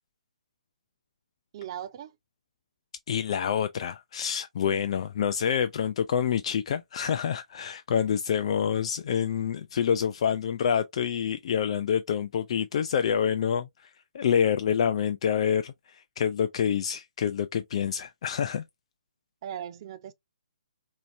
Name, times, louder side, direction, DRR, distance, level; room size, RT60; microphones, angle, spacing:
voice 1, 1.5-2.1 19.4-20.1, right 10 dB, 35° right, 0.5 m, -38 dB
voice 2, 3.1-13.9 14.1-18.6, left 8 dB, 45° left, 0.3 m, -27 dB
4.2 x 2.8 x 2.5 m
hypercardioid pair, 150°, 4 cm